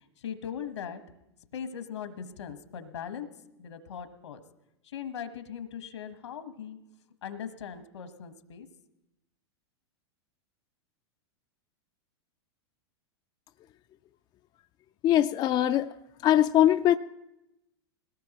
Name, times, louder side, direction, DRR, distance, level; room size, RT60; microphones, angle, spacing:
voice 1, 0.2-1.0 1.5-3.3 3.6-4.4 4.8-6.8 7.2-8.7, left 8 dB, 80° left, 9 dB, 1.3 m, -39 dB
voice 2, 15.0-15.9 16.2-17.0, left 12 dB, 30° left, 9 dB, 0.4 m, -22 dB
21.0 x 18.0 x 3.0 m, 0.90 s
hypercardioid pair, 105°, 14 cm